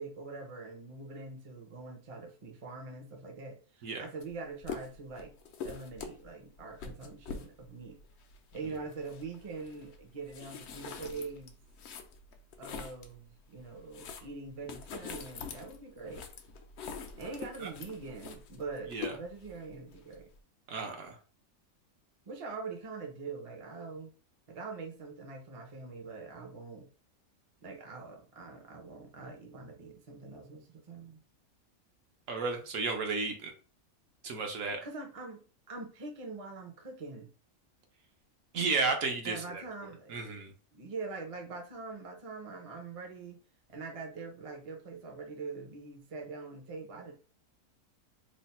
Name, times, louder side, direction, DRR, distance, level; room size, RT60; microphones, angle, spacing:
voice 1, 0.0-5.3 5.6-8.0 8.5-11.5 12.6-16.3 17.2-20.3 22.2-24.1 24.5-26.9 27.6-31.2 34.6-37.3 39.2-40.4 40.7-43.4 43.7-47.1, right 4 dB, 35° right, 2 dB, 0.5 m, -43 dB
sound 1, 4.2-4.3 4.6-13.2 13.6-20.4, left 6 dB, 65° left, 0.7 m, -45 dB
voice 2, 20.7-21.2 32.3-33.5 34.2-34.8 38.5-39.6 40.1-40.5, right 4 dB, 65° right, 3 dB, 1.1 m, -33 dB
3.2 x 2.1 x 4.2 m, 0.37 s
omnidirectional pair, 1.5 m